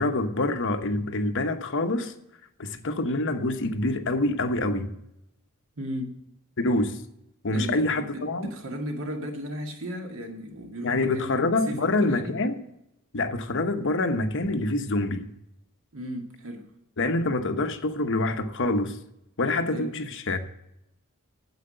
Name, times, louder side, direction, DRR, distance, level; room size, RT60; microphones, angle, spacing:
voice 1, 0.0-2.1 2.6-5.0 6.6-7.0 7.4-8.5 10.8-12.6 13.1-15.3 17.0-19.0 19.4-20.4, left 2 dB, 60° left, 1.0 m, -26 dB
voice 2, 5.8-6.2 7.5-12.4 15.9-16.7 19.7-19.9, equal, 65° right, 2.1 m, -35 dB
9.5 x 7.8 x 7.7 m
head